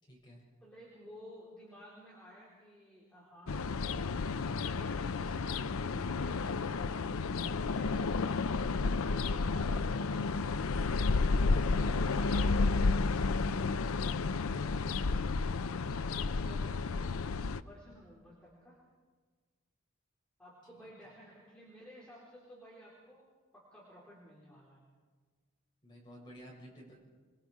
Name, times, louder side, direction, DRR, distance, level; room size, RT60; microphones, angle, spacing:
voice 1, 0.0-0.4 7.1-7.5 11.1-13.2 25.8-27.0, right 1 dB, 20° left, -3 dB, 6.8 m, -52 dB
voice 2, 0.6-4.2 8.8-10.2 16.0-18.8 20.4-23.2 23.5-24.8, equal, 5° left, -7 dB, 3.9 m, -55 dB
sound 1, 3.5-17.6, left 4 dB, 85° left, 0.6 m, -31 dB
27.0 x 21.5 x 4.8 m, 1.4 s
head